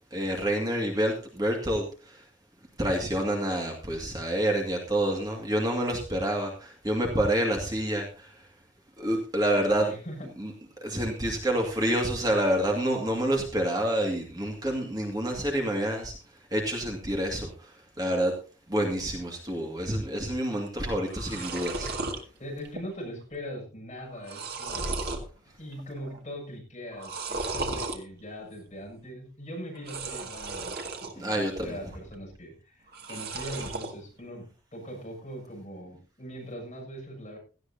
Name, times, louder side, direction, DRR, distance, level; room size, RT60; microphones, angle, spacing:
voice 1, 0.1-2.2 2.8-8.4 9.0-9.9 10.4-10.5 10.8-16.1 16.5-18.3 18.7-22.1 31.2-31.8, right 1 dB, 20° right, 1 dB, 2.2 m, -28 dB
voice 2, 9.5-10.3 22.4-25.0 25.6-37.4, equal, 35° left, -1 dB, 7.1 m, -41 dB
sound 1, 20.7-20.8 21.0-22.2 22.6-23.1 23.3-23.4 24.0-25.3 25.7-26.2 26.9-28.0 29.7-31.1 31.5-32.1 32.9-33.9, right 3 dB, 55° right, 2.2 m, -35 dB
17.5 x 14.5 x 2.8 m, 0.35 s
head